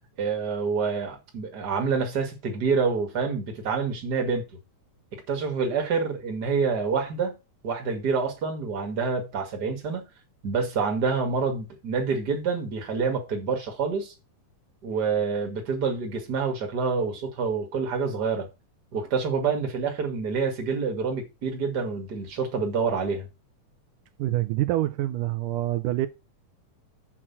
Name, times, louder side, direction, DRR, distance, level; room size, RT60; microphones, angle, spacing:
voice 1, 0.2-4.4 5.1-7.4 7.6-10.1 10.4-14.1 14.8-18.5 18.9-23.3, right 5 dB, 35° right, 2.4 m, -27 dB
voice 2, 24.2-26.1, right 15 dB, 85° right, 2.2 m, -26 dB
7.7 x 6.1 x 5.9 m
omnidirectional pair, 3.7 m